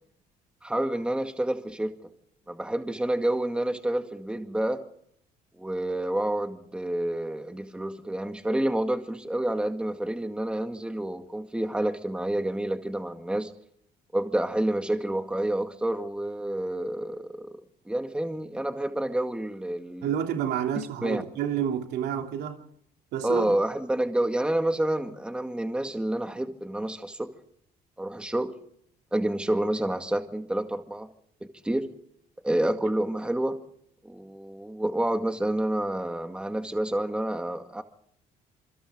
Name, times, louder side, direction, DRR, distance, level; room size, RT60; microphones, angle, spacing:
voice 1, 0.6-1.9 2.5-4.8 5.6-13.5 14.1-17.6 17.9-20.1 21.0-21.2 23.2-27.3 28.0-28.5 29.1-31.1 31.4-31.9 32.4-33.6 34.0-37.8, right 1 dB, 5° right, 2.0 m, -28 dB
voice 2, 20.0-22.6 23.1-23.5, right 9 dB, 80° right, 3.3 m, -29 dB
27.5 x 24.5 x 3.9 m
cardioid pair, 110°, 17 cm